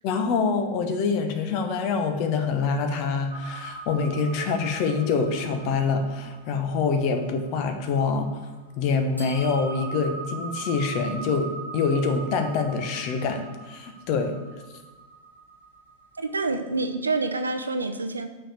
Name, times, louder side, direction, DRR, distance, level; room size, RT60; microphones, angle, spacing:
voice 1, 0.0-8.3 8.8-14.3, left 4 dB, 45° left, 6 dB, 0.9 m, -25 dB
sound 1, 3.3-8.5 9.2-16.6, right 3 dB, 85° left, 1.6 m, -41 dB
voice 2, 16.2-18.3, right 3 dB, 75° right, 8 dB, 0.5 m, -27 dB
6.1 x 4.7 x 6.6 m, 1.2 s
figure-of-eight pair, 90°, 0 cm